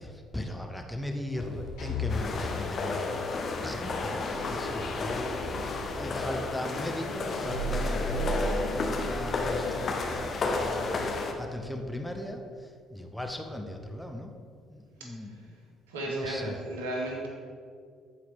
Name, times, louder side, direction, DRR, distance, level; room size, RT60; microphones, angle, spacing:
voice 1, 0.0-3.2 3.6-14.3 14.7-15.6 16.1-16.6, left 1 dB, 5° left, 3 dB, 0.9 m, -38 dB
Sliding door, 1.3-11.4, equal, 65° left, 1.7 m, -36 dB
sound 1, 2.1-11.3, left 3 dB, 45° left, 1.0 m, -32 dB
voice 2, 15.0-15.5 15.9-17.3, right 1 dB, 75° right, -1 dB, 1.3 m, -35 dB
14.0 x 4.8 x 3.6 m, 2.2 s
figure-of-eight pair, 50°, 0 cm